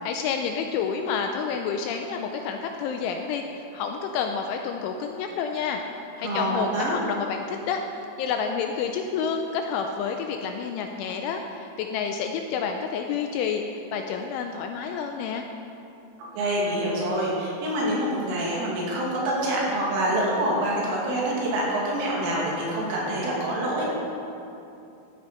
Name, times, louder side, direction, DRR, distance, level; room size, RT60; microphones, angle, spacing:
voice 1, 0.0-5.8 6.2-15.5, left 6 dB, 85° left, 4 dB, 2.8 m, -29 dB
voice 2, 6.2-7.0 16.3-23.9, right 1 dB, 70° right, -4 dB, 5.1 m, -26 dB
15.0 x 12.5 x 4.5 m, 2.8 s
omnidirectional pair, 6.0 m